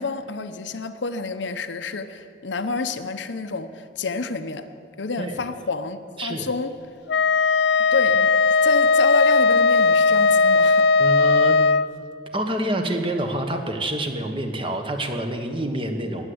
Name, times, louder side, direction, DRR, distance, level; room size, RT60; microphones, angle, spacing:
voice 1, 0.0-4.7 5.0-6.8 7.9-8.3 8.6-10.9, left 3 dB, 80° left, 9 dB, 0.8 m, -28 dB
Wind instrument woodwind instrument, 7.1-11.9, left 4 dB, 60° left, 0.4 m, -17 dB
voice 2, 11.0-11.6 12.3-16.3, right 1 dB, 30° right, 5 dB, 1.3 m, -27 dB
20.0 x 8.1 x 8.0 m, 2.5 s
head